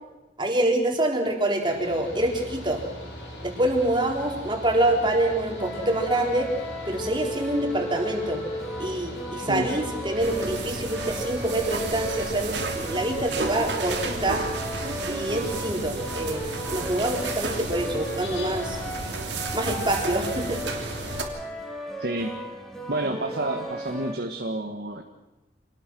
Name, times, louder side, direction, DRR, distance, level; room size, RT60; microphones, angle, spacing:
voice 1, 0.4-2.8 3.4-6.5 6.9-8.4 8.8-14.4 15.1-18.8 19.5-20.6, right 1 dB, 25° right, 2 dB, 3.9 m, -26 dB
Mechanical fan, 1.6-21.3, left 1 dB, 85° left, 6.9 m, -40 dB
sound 1, 5.6-24.1, equal, 5° left, 2.9 m, -36 dB
sound 2, 10.2-21.2, right 3 dB, 85° right, 3.2 m, -33 dB
voice 2, 22.0-22.4 22.9-25.0, right 1 dB, 65° right, 4 dB, 1.6 m, -29 dB
26.5 x 19.5 x 6.3 m, 1.0 s
head